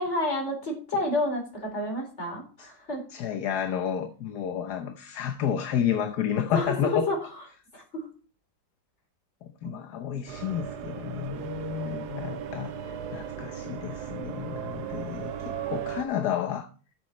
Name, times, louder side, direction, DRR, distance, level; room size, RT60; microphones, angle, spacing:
voice 1, 0.0-3.0 6.5-7.2 7.7-8.1 9.6-9.8, left 1 dB, 40° left, 4.3 m, -30 dB
voice 2, 3.1-7.1 9.4-12.7 13.1-16.7, left 9 dB, 65° left, 1.4 m, -30 dB
sound 1, 10.3-16.0, right 9 dB, 65° right, 1.4 m, -36 dB
12.0 x 7.4 x 4.3 m
omnidirectional pair, 1.9 m